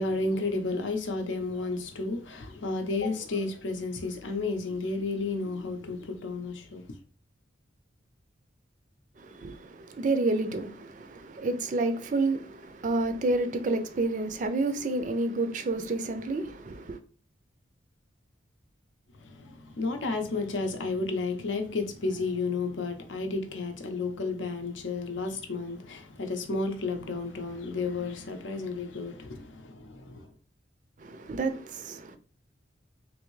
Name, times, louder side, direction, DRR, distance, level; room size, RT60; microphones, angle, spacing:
voice 1, 0.0-7.0 19.1-30.3, left 3 dB, 75° left, 0.6 m, -32 dB
voice 2, 9.2-17.0 31.0-32.2, right 2 dB, 40° right, 0.4 m, -29 dB
3.4 x 2.6 x 3.1 m
head